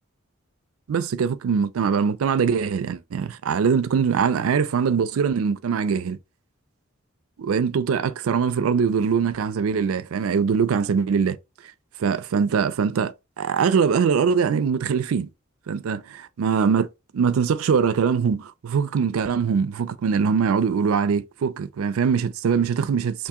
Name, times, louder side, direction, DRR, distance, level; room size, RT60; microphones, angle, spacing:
voice 1, 0.9-6.2 7.4-11.4 12.0-15.3 15.7-16.9 17.1-23.3, right 6 dB, 85° right, 0.4 m, -22 dB
2.8 x 2.6 x 3.5 m
head